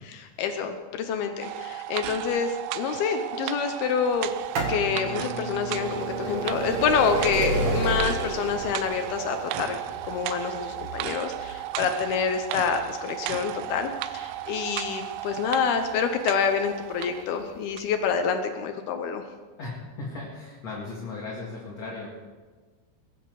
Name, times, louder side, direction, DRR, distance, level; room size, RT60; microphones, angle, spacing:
voice 1, 0.0-4.3 4.7-9.8 10.1-19.2, left 6 dB, 75° left, 7 dB, 2.4 m, -27 dB
sound 1, 1.4-17.3 17.8-17.9, right 14 dB, 85° right, 2.5 m, -35 dB
sound 2, 4.2-15.9 16.7-16.8 17.7-17.8 18.0-18.1, right 1 dB, 55° right, 2.9 m, -31 dB
voice 2, 19.6-22.3, left 3 dB, 45° left, -4 dB, 2.7 m, -37 dB
22.0 x 10.5 x 4.8 m, 1.4 s
omnidirectional pair, 5.2 m